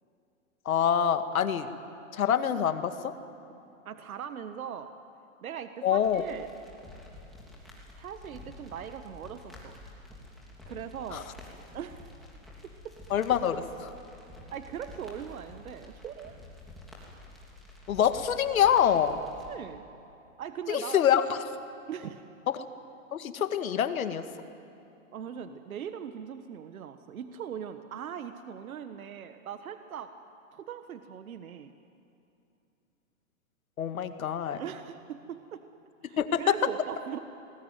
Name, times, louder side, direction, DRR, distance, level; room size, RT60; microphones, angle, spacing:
voice 1, 0.7-1.7 2.1-3.1 5.8-6.2 11.1-11.2 13.1-13.9 17.9-19.2 20.7-21.4 23.1-24.2 33.8-34.6 36.2-36.5, left 9 dB, 80° left, 9 dB, 2.0 m, -26 dB
voice 2, 3.8-4.9 5.4-6.5 8.0-9.7 10.7-11.3 11.7-12.1 12.6-12.9 14.5-16.3 19.5-19.8 20.4-21.0 21.9-22.2 25.1-30.1 30.5-31.7 34.5-35.6 36.0-37.2, right 8 dB, 85° right, 9 dB, 1.4 m, -40 dB
sound 1, 6.0-19.5, left 2 dB, ahead, 3.1 m, -49 dB
29.5 x 21.0 x 9.3 m, 2.8 s
hypercardioid pair, 170°, 41 cm